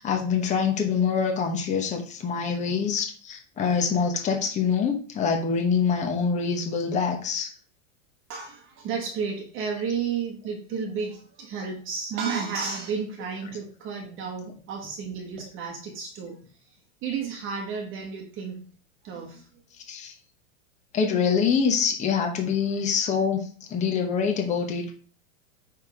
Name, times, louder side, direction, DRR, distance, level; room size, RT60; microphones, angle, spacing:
voice 1, 0.0-7.5 19.9-20.1 20.9-24.9, left 6 dB, 20° left, 2 dB, 1.1 m, -25 dB
voice 2, 8.3-18.6 19.0-19.5, right 6 dB, 30° right, 2 dB, 1.2 m, -32 dB
9.0 x 3.6 x 5.0 m, 0.43 s
supercardioid pair, 145°, 39 cm